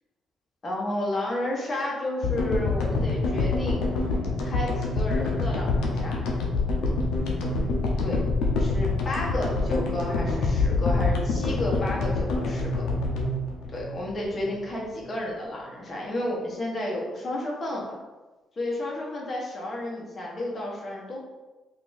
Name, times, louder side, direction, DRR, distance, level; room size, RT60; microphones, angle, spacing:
voice 1, 0.6-3.8 4.4-6.2 8.0-8.2 8.6-12.9 13.7-18.0 18.6-21.2, left 1 dB, 35° left, -3 dB, 1.0 m, -31 dB
sound 1, 2.2-14.6, left 3 dB, 90° left, 0.6 m, -26 dB
2.9 x 2.5 x 3.9 m, 1.2 s
cardioid pair, 90°, 0 cm